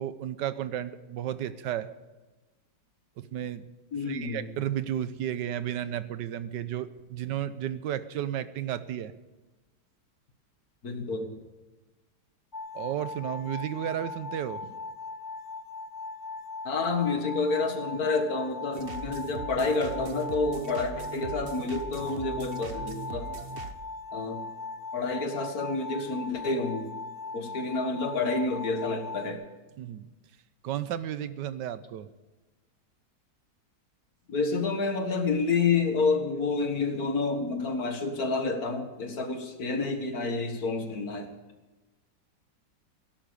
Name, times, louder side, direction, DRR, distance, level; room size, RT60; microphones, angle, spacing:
voice 1, 0.0-1.9 3.2-3.7 4.1-9.1 12.7-14.6 29.8-30.1 30.6-32.1, right 11 dB, 85° right, 14 dB, 1.4 m, -33 dB
voice 2, 3.9-4.5 10.8-11.3 16.6-23.3 24.1-24.5 24.9-26.9 27.3-29.4 34.3-41.3, left 3 dB, 60° left, 5 dB, 2.2 m, -29 dB
sound 1, 12.5-29.3, left 3 dB, 25° left, 0.5 m, -39 dB
sound 2, 18.7-23.8, right 5 dB, 45° right, 0.9 m, -40 dB
17.5 x 11.0 x 6.8 m, 1.2 s
omnidirectional pair, 1.9 m